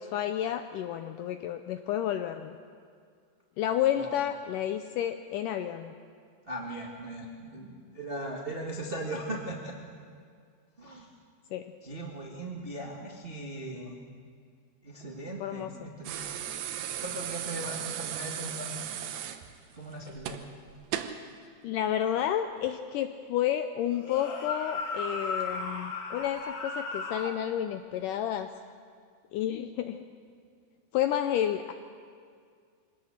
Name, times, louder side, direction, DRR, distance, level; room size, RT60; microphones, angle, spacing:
voice 1, 0.0-2.6 3.6-5.9 11.5-11.6 15.4-15.7 21.6-28.5 29.3-30.0 30.9-31.7, left 11 dB, 80° left, 8 dB, 1.9 m, -30 dB
voice 2, 6.5-9.7 10.8-11.1 11.8-14.0 14.8-16.2 16.7-18.8 19.7-20.4, right 1 dB, 40° right, -2 dB, 0.8 m, -39 dB
sound 1, 16.1-21.2 22.6-22.7, right 10 dB, 75° right, 2.6 m, -36 dB
sound 2, 24.0-27.4, left 3 dB, 50° left, 1.6 m, -35 dB
23.5 x 18.5 x 6.5 m, 2.1 s
omnidirectional pair, 4.4 m